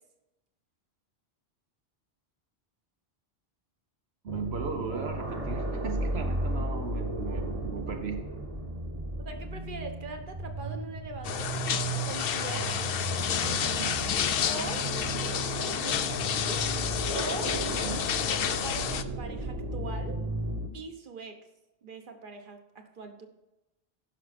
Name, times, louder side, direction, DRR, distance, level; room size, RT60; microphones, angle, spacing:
voice 1, 4.2-8.3 12.6-12.9 13.6-14.0 17.7-18.0, right 6 dB, 80° right, 4 dB, 1.0 m, -37 dB
sound 1, 4.3-20.7, right 2 dB, 35° right, 1.3 m, -34 dB
voice 2, 9.2-11.5 12.0-12.7 13.2-13.7 14.5-16.6 17.1-17.5 18.3-20.2 20.7-21.4 21.8-23.3, right 3 dB, 55° right, 5 dB, 1.3 m, -41 dB
sound 2, 11.2-19.0, left 8 dB, 70° left, 0.8 m, -30 dB
15.5 x 6.2 x 4.3 m, 0.98 s
omnidirectional pair, 1.1 m